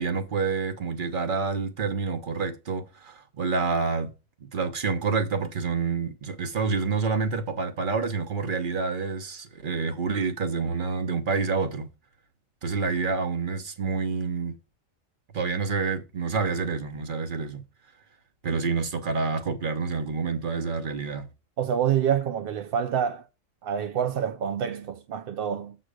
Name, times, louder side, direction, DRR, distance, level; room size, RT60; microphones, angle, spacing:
voice 1, 0.0-4.1 4.5-11.9 12.6-14.6 15.3-17.6 18.4-21.3, right 4 dB, 40° right, 1.1 m, -28 dB
voice 2, 21.6-23.2 23.6-25.8, right 8 dB, 65° right, 0.6 m, -27 dB
7.8 x 4.1 x 5.0 m
omnidirectional pair, 1.4 m